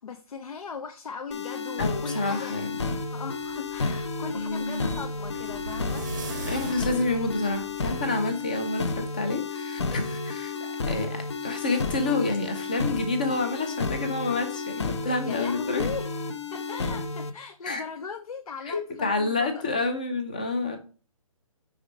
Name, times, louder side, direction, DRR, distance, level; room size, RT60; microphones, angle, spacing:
voice 1, 0.0-2.5 3.1-6.1 6.6-6.8 9.9-10.2 15.0-19.6, left 5 dB, 80° left, 0.8 m, -38 dB
sound 1, 1.3-17.3, left 3 dB, 50° left, 0.8 m, -32 dB
voice 2, 1.8-2.8 4.3-5.0 6.4-15.9 17.6-17.8 18.7-20.8, left 3 dB, 15° left, 0.5 m, -29 dB
sound 2, 3.1-8.1, right 3 dB, 30° right, 0.7 m, -39 dB
5.2 x 5.0 x 5.0 m
hypercardioid pair, 175°, 18 cm